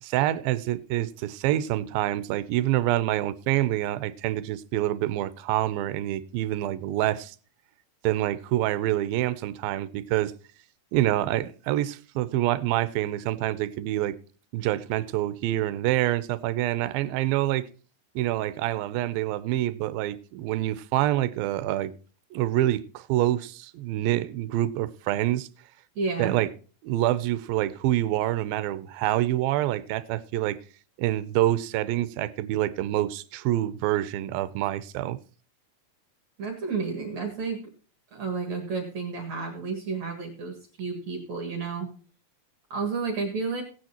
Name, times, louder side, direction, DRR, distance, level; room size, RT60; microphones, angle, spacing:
voice 1, 0.0-7.4 8.0-10.3 10.9-14.2 14.5-17.7 18.2-21.9 22.3-25.5 26.2-26.5 26.8-30.6 31.0-35.2, right 14 dB, 80° right, 2.4 m, -26 dB
voice 2, 26.0-26.3 36.4-37.6 38.1-41.9 42.7-43.6, right 4 dB, 50° right, 2.8 m, -31 dB
17.5 x 9.0 x 2.9 m
omnidirectional pair, 4.4 m